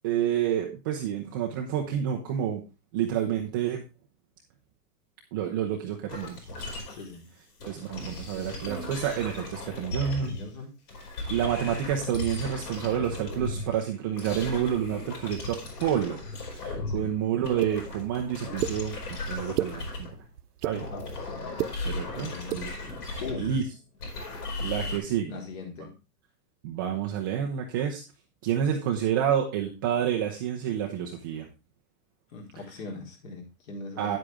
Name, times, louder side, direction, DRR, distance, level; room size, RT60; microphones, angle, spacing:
voice 1, 0.0-2.6 2.9-3.8 5.3-6.4 7.6-10.3 11.3-16.2 16.5-18.9 19.3-20.1 20.6-20.8 21.9-22.7 23.4-23.6 24.6-25.4 26.6-28.0 28.4-31.5 34.0-34.2, right 9 dB, 15° right, 1 dB, 0.4 m, -29 dB
sound 1, 6.1-7.2 7.6-10.5 10.9-17.1 17.3-20.3 20.7-25.0, left 2 dB, 70° left, 5.8 m, -36 dB
voice 2, 6.9-7.3 8.3-8.8 10.1-10.7 16.9-17.1 20.7-21.0 22.1-22.6 23.2-23.5 25.2-25.9 32.3-34.2, left 3 dB, 55° left, 3 dB, 4.2 m, -41 dB
sound 2, 17.6-17.7 18.6-18.7 19.4-19.7 20.4-20.8 21.4-21.7 22.4-22.6, right 12 dB, 70° right, 0.9 m, -29 dB
10.0 x 8.0 x 3.4 m, 0.29 s
supercardioid pair, 160°, 47 cm